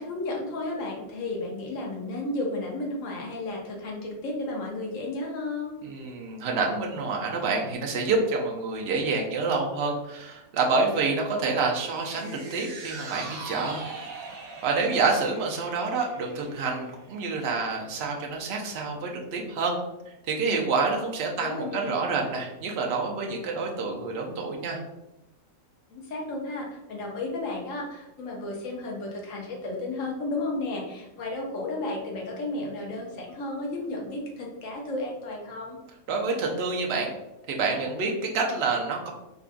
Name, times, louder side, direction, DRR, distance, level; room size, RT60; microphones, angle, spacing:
voice 1, 0.0-5.7 21.4-22.0 25.9-35.8, left 2 dB, 75° left, -1 dB, 1.2 m, -33 dB
voice 2, 5.8-13.8 14.6-19.7 20.3-24.8 36.1-37.1 37.5-39.1, right 4 dB, 60° right, 0 dB, 0.8 m, -28 dB
sound 1, 11.9-18.3 18.7-18.8, right 3 dB, 90° right, 1.0 m, -42 dB
3.7 x 2.4 x 2.4 m, 0.93 s
omnidirectional pair, 1.4 m